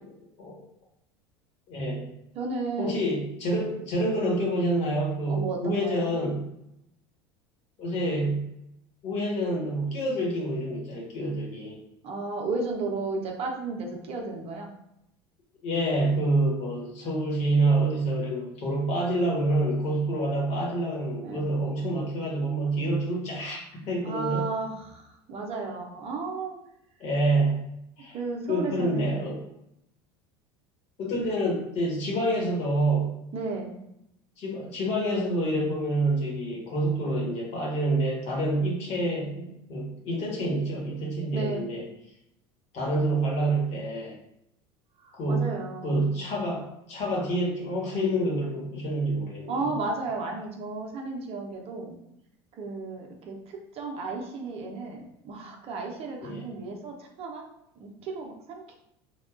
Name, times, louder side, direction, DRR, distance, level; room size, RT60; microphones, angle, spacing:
voice 1, 1.7-2.1 2.8-6.4 7.8-8.5 9.0-11.8 15.6-23.6 23.9-24.4 27.0-27.6 28.0-28.2 28.5-29.4 31.0-33.1 34.4-41.8 42.7-44.2 45.1-45.5 45.8-49.5 56.2-56.5, right 1 dB, 50° left, -2 dB, 1.3 m, -27 dB
voice 2, 2.3-3.0 5.3-6.1 12.0-14.7 21.2-21.5 24.0-26.6 28.1-29.1 33.3-33.8 41.3-41.6 45.0-46.1 49.5-52.0 52.6-57.4 57.8-58.7, right 3 dB, 45° right, 2 dB, 0.7 m, -34 dB
3.4 x 2.3 x 2.4 m, 0.80 s
hypercardioid pair, 90°, 14 cm